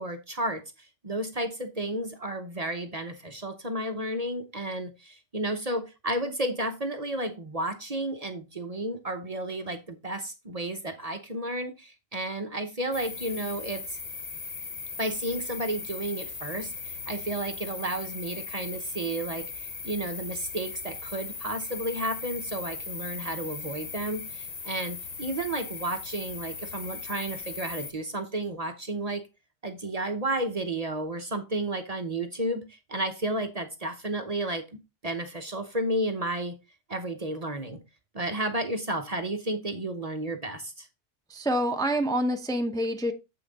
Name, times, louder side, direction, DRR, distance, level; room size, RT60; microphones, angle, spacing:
voice 1, 0.0-14.0 15.0-29.2 29.6-34.6 35.0-36.6 36.9-37.8 38.1-40.9, right 1 dB, 35° right, 0.9 m, -32 dB
sound 1, 12.9-27.9, left 5 dB, 40° left, 0.8 m, -38 dB
voice 2, 41.3-43.1, equal, 5° left, 0.7 m, -27 dB
7.8 x 5.6 x 4.0 m
omnidirectional pair, 1.2 m